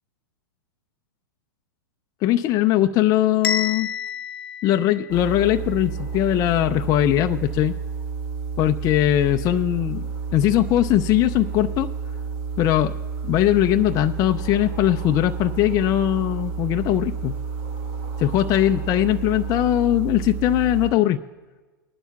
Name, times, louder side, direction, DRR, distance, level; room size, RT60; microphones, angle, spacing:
voice 1, 2.2-3.9 4.6-7.7 8.6-11.9 12.6-13.0 13.2-17.3 18.2-21.2, left 13 dB, 30° left, 7 dB, 0.4 m, -20 dB
Bell, 3.4-5.5, left 7 dB, 80° left, 0.8 m, -29 dB
sound 1, 5.1-20.9, right 5 dB, 45° right, 1.4 m, -30 dB
21.5 x 11.5 x 2.3 m, 1.3 s
hypercardioid pair, 110°, 12 cm